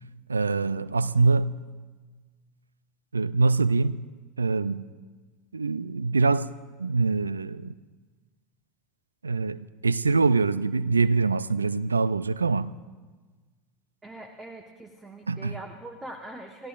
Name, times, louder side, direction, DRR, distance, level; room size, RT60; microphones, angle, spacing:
voice 1, 0.3-1.5 3.1-4.0 4.4-4.8 5.5-6.5 6.8-7.7 9.2-12.7 15.3-15.5, right 4 dB, 85° right, 0.3 m, -24 dB
voice 2, 14.0-16.7, right 2 dB, 15° right, 1.1 m, -42 dB
27.5 x 15.0 x 2.5 m
figure-of-eight pair, 80°, 0 cm